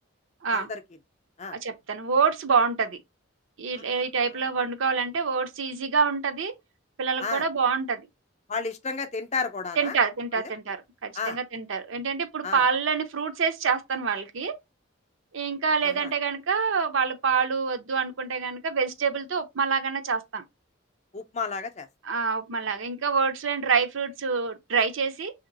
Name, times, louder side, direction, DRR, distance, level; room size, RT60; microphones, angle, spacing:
voice 1, 0.5-0.8 1.4-1.6 3.7-3.9 4.2-4.4 7.2-7.4 8.5-10.0 10.3-10.4 11.1-11.4 12.4-12.6 15.8-16.1 21.1-21.9, left 4 dB, 35° left, 0.5 m, -32 dB
voice 2, 1.5-3.0 3.6-6.5 7.0-8.0 9.8-14.5 15.3-20.4 22.1-25.3, right 5 dB, 70° right, 0.6 m, -26 dB
2.9 x 2.8 x 3.9 m
head